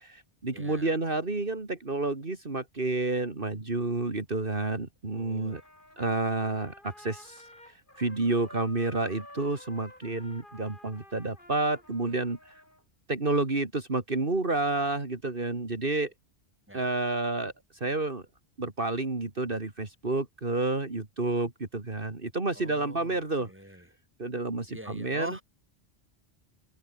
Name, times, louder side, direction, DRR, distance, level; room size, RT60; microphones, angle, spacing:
voice 1, 0.0-5.6 6.0-12.6 13.1-16.1 16.7-18.2 18.6-23.5 24.2-25.4, right 2 dB, 55° right, 3.1 m, -30 dB
voice 2, 0.5-1.0 5.1-5.6 16.7-16.9 22.5-23.9 24.7-25.4, equal, 10° right, 7.4 m, -44 dB
Trumpet, 5.5-12.8, left 1 dB, 50° left, 7.3 m, -51 dB
omnidirectional pair, 1.1 m